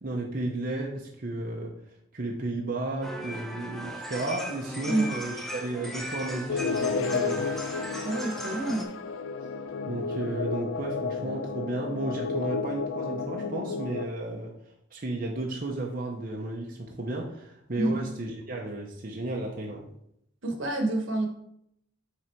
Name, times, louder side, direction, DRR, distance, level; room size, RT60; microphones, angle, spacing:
voice 1, 0.0-1.7 2.1-7.4 9.9-14.5 14.9-19.9, right 2 dB, 45° right, -1 dB, 0.8 m, -33 dB
sound 1, 3.0-8.9, equal, ahead, 0.7 m, -38 dB
sound 2, 6.5-14.0, left 5 dB, 70° left, 0.4 m, -32 dB
voice 2, 8.0-8.9 17.8-18.0 20.4-21.3, right 2 dB, 70° right, 4 dB, 1.2 m, -28 dB
6.1 x 3.9 x 4.5 m, 0.75 s
head